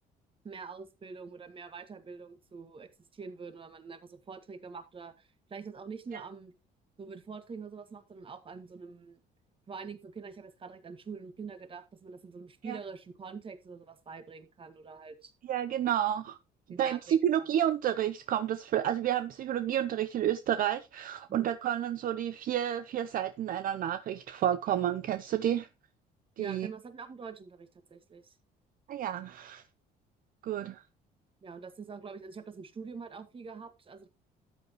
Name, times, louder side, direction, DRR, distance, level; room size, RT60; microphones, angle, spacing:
voice 1, 0.4-6.5 7.0-9.2 9.7-15.3 16.7-17.5 21.3-21.5 26.4-28.3 31.4-34.1, right 5 dB, 30° right, 1.7 m, -45 dB
voice 2, 15.5-16.4 16.8-25.7 26.4-26.7 28.9-29.6 30.4-30.8, right 10 dB, 55° right, 0.6 m, -30 dB
13.0 x 8.1 x 3.0 m
cardioid pair, 110°, 17 cm